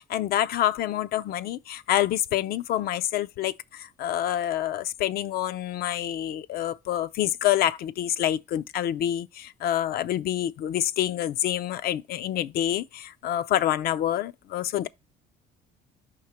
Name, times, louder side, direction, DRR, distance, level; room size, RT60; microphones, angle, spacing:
voice 1, 0.0-14.9, left 12 dB, 65° left, 0.5 m, -27 dB
5.7 x 3.2 x 5.7 m
cardioid pair, 110°, 17 cm